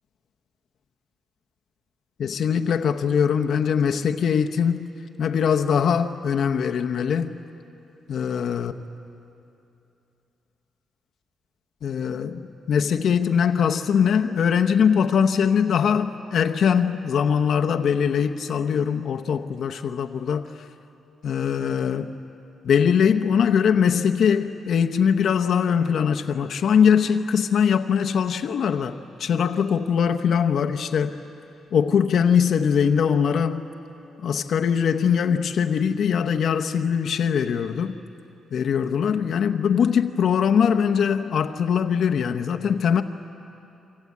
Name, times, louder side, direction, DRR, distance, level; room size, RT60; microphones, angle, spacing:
voice 1, 2.2-4.9 5.2-7.3 8.1-8.7 11.8-12.4 12.7-20.6 21.2-22.1 22.6-31.2 31.7-33.7 34.2-38.0 38.5-43.0, left 7 dB, 55° left, 7 dB, 0.8 m, -22 dB
27.5 x 25.0 x 8.4 m, 2.8 s
cardioid pair, 155°, 0 cm